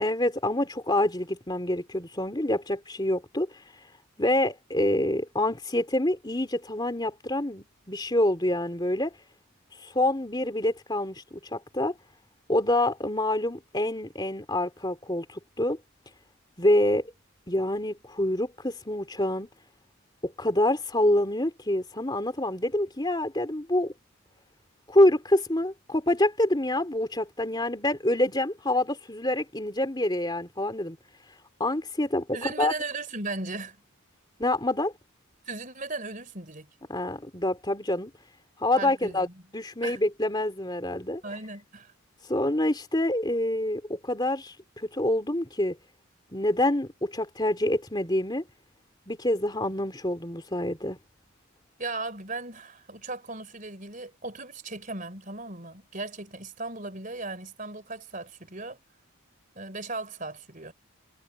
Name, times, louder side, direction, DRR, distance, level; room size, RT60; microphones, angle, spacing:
voice 1, 0.0-3.6 4.2-9.2 9.8-11.9 12.5-15.8 16.6-17.1 17.5-19.5 20.2-23.9 24.9-31.0 31.6-32.7 34.4-34.9 36.9-38.1 38.6-39.3 39.5-41.2 42.3-45.8 46.3-48.4 49.1-51.0, left 1 dB, 20° left, 3.1 m, -26 dB
voice 2, 32.3-33.8 35.5-36.7 38.8-39.4 39.8-40.0 41.2-41.9 51.8-58.8 59.5-60.7, right 3 dB, 35° right, 4.4 m, -37 dB
head